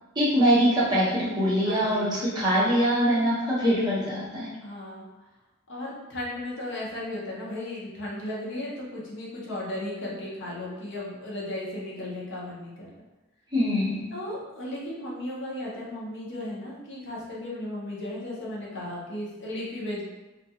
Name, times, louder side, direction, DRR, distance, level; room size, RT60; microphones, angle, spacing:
voice 1, 0.2-4.5 13.5-14.0, equal, 20° right, -9 dB, 0.7 m, -23 dB
voice 2, 1.6-2.1 4.6-5.1 5.7-12.9 14.1-20.0, left 1 dB, 55° left, -5 dB, 0.6 m, -35 dB
2.3 x 2.2 x 2.7 m, 1.1 s
head